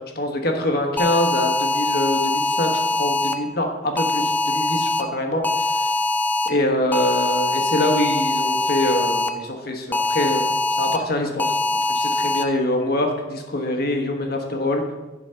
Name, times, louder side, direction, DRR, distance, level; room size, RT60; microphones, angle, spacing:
voice 1, 0.1-5.9 6.4-10.4 10.8-11.6 11.9-14.8, left 1 dB, 55° left, 3 dB, 1.2 m, -24 dB
sound 1, 1.0-3.3 4.0-5.0 5.4-6.5 6.9-9.3 9.9-11.0 11.4-12.4, left 2 dB, 10° left, 0.4 m, -22 dB
11.0 x 4.1 x 5.6 m, 1.1 s
head